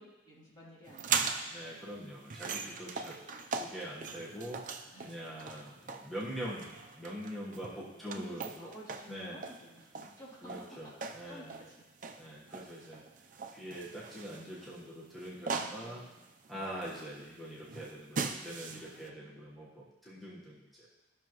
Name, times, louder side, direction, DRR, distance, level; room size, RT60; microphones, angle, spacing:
voice 1, 0.0-1.6 2.6-3.2 4.9-5.2 7.6-10.5 11.3-11.7 12.4-12.7 15.5-16.2 18.7-19.6, equal, 25° left, -9 dB, 3.2 m, -54 dB
sound 1, 0.9-19.1, right 5 dB, 50° right, 0.6 m, -40 dB
voice 2, 1.5-3.2 3.5-8.7 9.1-9.4 10.4-11.6 12.2-13.0 13.5-16.0 16.5-20.9, equal, ahead, -7 dB, 1.3 m, -44 dB
14.0 x 6.2 x 3.0 m, 1.1 s
head